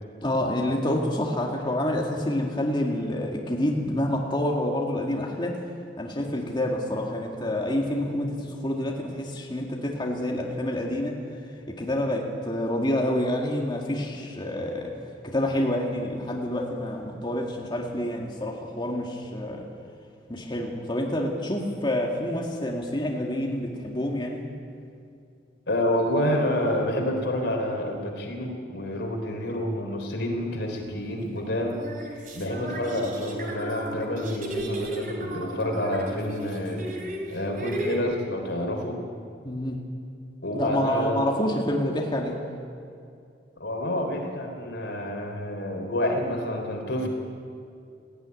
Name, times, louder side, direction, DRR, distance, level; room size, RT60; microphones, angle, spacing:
voice 1, 0.2-5.6 6.0-11.1 11.7-14.9 15.2-19.7 20.3-24.4 39.4-39.8 40.5-42.4, left 1 dB, 25° left, -1 dB, 2.0 m, -28 dB
voice 2, 25.7-31.8 32.3-36.8 37.3-39.0 40.4-41.5 43.6-47.1, left 1 dB, 80° left, 2 dB, 3.8 m, -28 dB
sound 1, 30.8-30.9 31.6-38.0, right 1 dB, 50° right, 3.6 m, -34 dB
17.5 x 15.0 x 9.7 m, 2.4 s
head